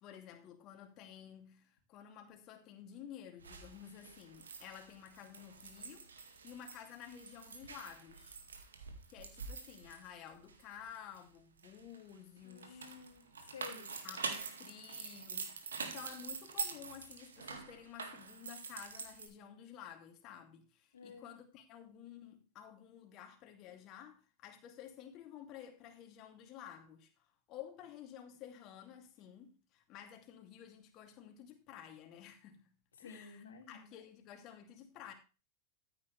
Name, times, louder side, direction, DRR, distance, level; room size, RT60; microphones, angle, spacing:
voice 1, 0.0-8.4 9.1-12.9 14.0-32.7 33.0-35.1, left 9 dB, 35° left, 2.7 m, -52 dB
sound 1, 3.4-11.2 11.6-19.3, right 5 dB, 70° right, 2.1 m, -46 dB
voice 2, 12.4-14.0 20.9-21.3 33.0-33.9, left 5 dB, 65° left, 2.5 m, -52 dB
14.0 x 9.0 x 3.3 m
figure-of-eight pair, 90°, 0 cm